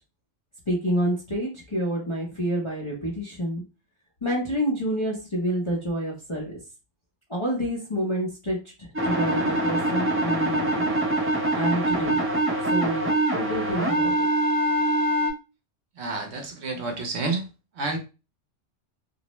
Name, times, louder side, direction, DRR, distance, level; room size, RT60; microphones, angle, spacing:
voice 1, 0.7-3.6 4.2-6.6 7.3-10.9 11.5-12.2 12.6-14.1, equal, 35° left, -5 dB, 0.5 m, -28 dB
sound 1, 8.9-15.3, right 1 dB, 20° right, 0.3 m, -24 dB
voice 2, 16.0-17.5 17.7-18.0, right 3 dB, 65° right, 4 dB, 0.8 m, -29 dB
2.5 x 2.0 x 2.9 m, 0.30 s
omnidirectional pair, 1.3 m